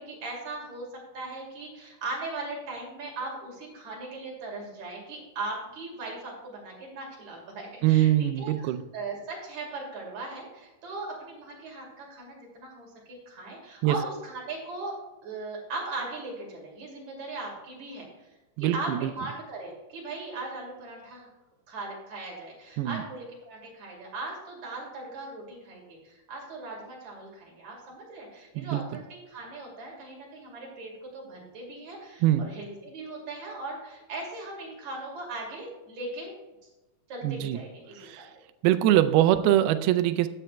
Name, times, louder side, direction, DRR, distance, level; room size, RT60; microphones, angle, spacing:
voice 1, 0.0-15.0 15.2-18.3 18.6-21.3 21.7-36.3 37.1-38.2, right 2 dB, 50° right, -2 dB, 3.4 m, -39 dB
voice 2, 7.8-8.8 13.8-14.0 18.6-19.1 22.8-23.0 28.6-28.8 32.2-32.5 37.2-37.6 38.0-38.3 38.6-40.3, right 13 dB, 85° right, 11 dB, 2.5 m, -23 dB
14.5 x 9.0 x 2.2 m, 1.1 s
omnidirectional pair, 4.5 m